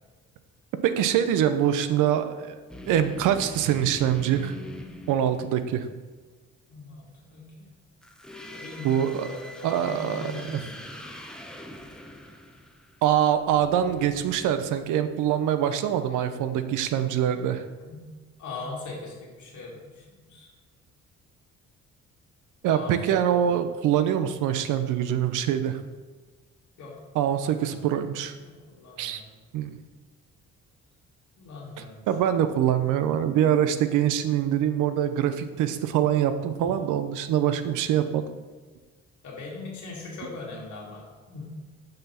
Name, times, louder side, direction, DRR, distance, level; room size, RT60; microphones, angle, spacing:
voice 1, 0.8-2.6 2.9-4.5 5.1-5.8 8.8-9.3 9.6-10.6 13.0-17.6 22.6-25.8 27.1-28.3 29.0-29.2 29.5-29.8 32.1-38.2, right 10 dB, 85° right, 10 dB, 0.6 m, -24 dB
sound 1, 2.7-6.0 8.0-15.3, left 1 dB, ahead, 0.8 m, -43 dB
voice 2, 6.7-7.7 8.5-11.1 17.8-18.1 18.4-20.5 22.7-23.5 26.8-26.9 27.3-27.8 28.4-29.3 31.4-32.4 36.6-36.7 39.2-41.4, left 3 dB, 75° left, -3 dB, 2.3 m, -40 dB
6.3 x 4.7 x 5.7 m, 1.4 s
cardioid pair, 90°, 30 cm